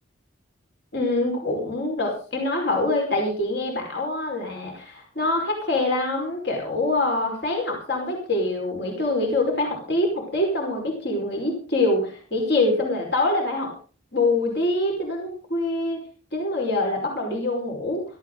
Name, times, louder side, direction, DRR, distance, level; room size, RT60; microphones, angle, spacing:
voice 1, 0.9-13.7 14.1-16.0 16.3-18.0, left 2 dB, 60° left, 1 dB, 5.0 m, -25 dB
17.0 x 14.5 x 3.9 m, 0.38 s
head